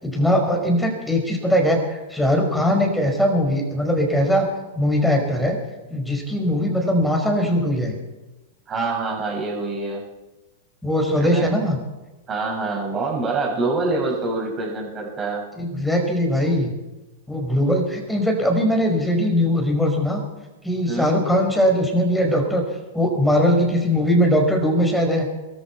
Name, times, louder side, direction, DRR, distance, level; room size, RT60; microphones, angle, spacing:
voice 1, 0.0-4.5 4.7-5.6 5.9-7.9 10.8-11.8 15.6-16.7 17.3-20.2 20.6-22.6 22.9-25.3, equal, 5° left, 2 dB, 4.9 m, -20 dB
voice 2, 8.7-10.0 11.3-11.5 12.3-15.5 20.9-21.1, right 3 dB, 25° right, -1 dB, 6.8 m, -25 dB
23.0 x 14.0 x 4.6 m, 1.1 s
hypercardioid pair, 105°, 0 cm